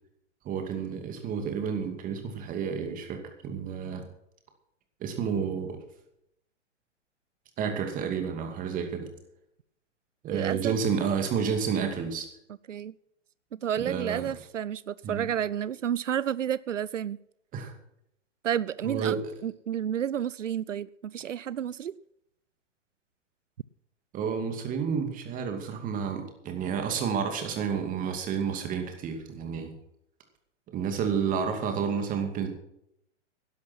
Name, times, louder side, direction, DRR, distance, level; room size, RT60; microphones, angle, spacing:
voice 1, 0.4-4.0 5.0-5.8 7.6-9.1 10.2-12.3 13.8-14.3 15.0-15.3 17.5-17.7 18.8-19.2 24.1-29.7 30.7-32.5, right 6 dB, 20° right, 5 dB, 2.5 m, -30 dB
voice 2, 10.3-10.8 12.7-12.9 13.5-17.2 18.4-19.2 19.4-22.0, right 9 dB, 90° right, 19 dB, 0.5 m, -31 dB
11.5 x 11.5 x 6.2 m, 0.78 s
figure-of-eight pair, 125°, 36 cm